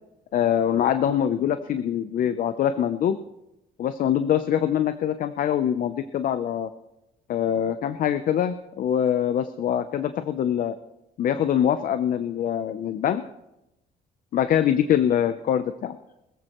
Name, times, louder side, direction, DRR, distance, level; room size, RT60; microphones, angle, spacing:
voice 1, 0.3-3.2 3.8-6.7 7.3-10.7 11.2-13.2 14.3-16.0, left 9 dB, 55° left, 11 dB, 0.6 m, -24 dB
20.5 x 14.5 x 3.1 m, 0.90 s
cardioid pair, 110°, 17 cm